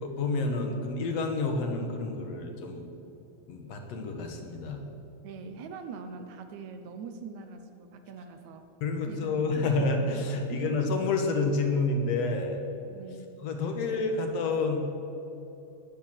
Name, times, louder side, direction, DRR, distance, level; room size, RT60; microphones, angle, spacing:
voice 1, 0.0-2.9 3.5-4.8 8.8-12.6 13.4-14.9, left 3 dB, 65° left, 4 dB, 2.3 m, -29 dB
voice 2, 5.2-8.7 9.1-9.7 10.5-10.8 12.9-13.3, right 5 dB, 75° right, 7 dB, 2.2 m, -43 dB
20.0 x 7.0 x 7.4 m, 3.0 s
omnidirectional pair, 3.4 m